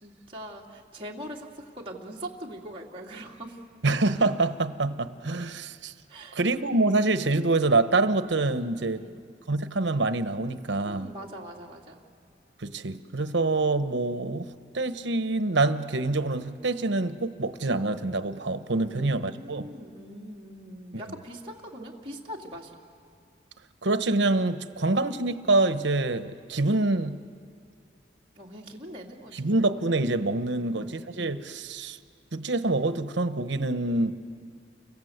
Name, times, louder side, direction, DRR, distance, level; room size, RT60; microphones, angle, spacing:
voice 1, 0.0-3.6 6.1-6.4 8.9-9.2 10.8-12.0 18.7-22.7 28.4-29.5, equal, 30° right, -2 dB, 2.7 m, -42 dB
voice 2, 3.8-5.9 6.3-9.0 9.5-11.1 12.6-14.5 14.7-19.7 23.8-27.2 29.3-32.0 32.3-34.1, right 2 dB, 75° right, 11 dB, 1.0 m, -26 dB
30.0 x 25.0 x 8.1 m, 2.4 s
head